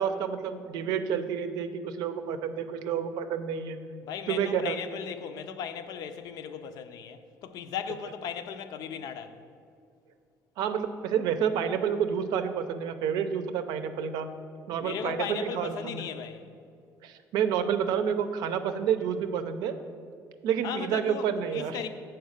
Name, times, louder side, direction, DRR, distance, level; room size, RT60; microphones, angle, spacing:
voice 1, 0.0-3.8 4.3-4.8 10.6-14.3 14.7-16.1 17.0-19.7 20.4-21.8, right 8 dB, 80° right, 0.6 m, -29 dB
voice 2, 4.0-9.4 14.8-16.4 20.6-21.9, left 8 dB, 65° left, 0.5 m, -37 dB
7.2 x 4.5 x 6.4 m
cardioid pair, 140°, 7 cm